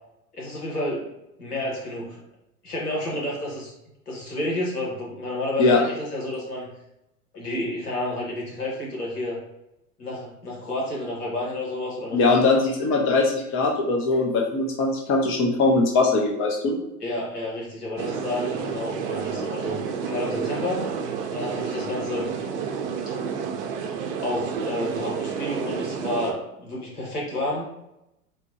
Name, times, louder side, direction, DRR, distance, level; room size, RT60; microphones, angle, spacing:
voice 1, 0.3-1.1 1.4-2.2 2.6-3.7 4.1-6.7 7.3-9.4 10.0-12.6 17.0-20.9 21.3-22.3 24.2-27.7, left 1 dB, 90° left, -4 dB, 1.4 m, -30 dB
voice 2, 12.1-16.8, left 3 dB, 30° left, 0 dB, 0.6 m, -21 dB
sound 1, 18.0-26.3, right 6 dB, 50° right, 0.6 m, -30 dB
4.1 x 2.2 x 2.8 m, 0.87 s
hypercardioid pair, 95°, 45 cm